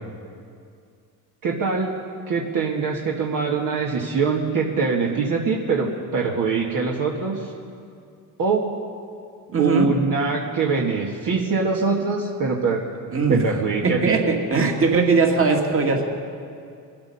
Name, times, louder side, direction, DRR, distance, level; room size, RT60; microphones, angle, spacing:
voice 1, 1.4-1.9 2.3-7.5 8.4-8.7 9.6-12.8 13.3-14.2, right 4 dB, 55° right, -2 dB, 1.8 m, -23 dB
voice 2, 9.5-9.9 13.1-13.4 13.8-16.0, right 4 dB, 35° right, 1 dB, 2.4 m, -20 dB
24.0 x 8.7 x 5.6 m, 2.4 s
cardioid pair, 90°, 39 cm